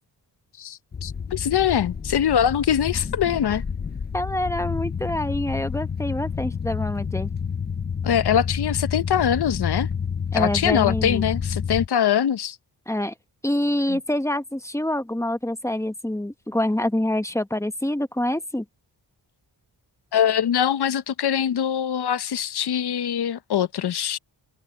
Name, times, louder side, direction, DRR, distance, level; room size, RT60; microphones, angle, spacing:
voice 1, 0.6-3.6 8.0-9.9 10.3-12.6 13.9-14.0 20.1-24.2, left 9 dB, 65° left, 0.8 m, -23 dB
sound 1, 0.9-11.9, left 6 dB, 25° left, 0.5 m, -29 dB
voice 2, 4.1-7.3 10.3-11.2 12.9-13.1 13.4-18.6, left 1 dB, 5° left, 1.2 m, -26 dB
cardioid pair, 90°, 42 cm